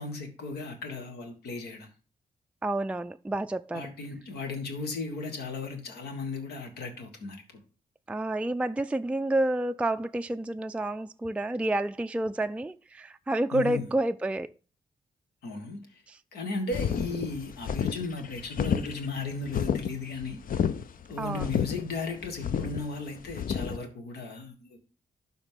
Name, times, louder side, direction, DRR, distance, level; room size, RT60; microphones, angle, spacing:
voice 1, 0.0-1.9 3.7-7.6 13.5-13.9 15.4-16.0 16.3-20.4 21.1-24.8, left 3 dB, 75° left, 1.5 m, -36 dB
voice 2, 2.6-3.9 8.1-14.5 16.1-16.2 21.2-21.5, right 1 dB, 5° right, 0.3 m, -29 dB
sound 1, 16.7-23.8, left 7 dB, 55° left, 0.6 m, -31 dB
11.5 x 4.2 x 3.6 m
hypercardioid pair, 45°, 17 cm